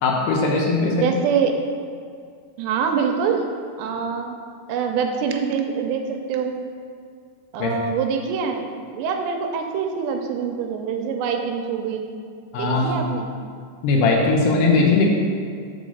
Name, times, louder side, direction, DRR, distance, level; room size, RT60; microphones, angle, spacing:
voice 1, 0.0-1.0 7.6-7.7 12.5-13.0 13.8-15.1, left 3 dB, 75° left, -1 dB, 2.8 m, -19 dB
voice 2, 1.0-1.5 2.6-3.4 3.8-4.4 4.7-6.5 7.5-8.7 8.9-12.0 12.6-13.3, right 6 dB, 85° right, 4 dB, 2.8 m, -24 dB
5.5 x 5.2 x 6.4 m, 2.3 s
omnidirectional pair, 5.0 m